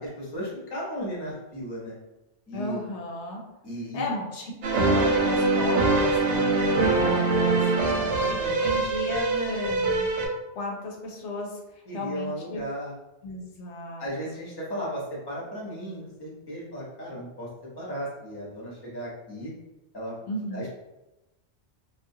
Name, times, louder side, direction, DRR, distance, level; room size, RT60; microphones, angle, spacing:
voice 1, 0.0-1.9 2.5-2.8 3.6-4.1 7.7-8.6 11.9-12.9 14.0-17.5 17.8-19.5 19.9-20.1 20.5-20.7, equal, 25° left, -5 dB, 0.7 m, -35 dB
voice 2, 2.5-3.4 3.9-4.5 4.8-7.6 8.6-10.1 10.6-12.6 13.2-14.4 20.3-20.6, left 1 dB, 80° left, 0 dB, 0.9 m, -34 dB
sound 1, 4.6-10.3, right 3 dB, 85° right, 0.9 m, -23 dB
2.3 x 2.1 x 2.6 m, 0.97 s
omnidirectional pair, 1.2 m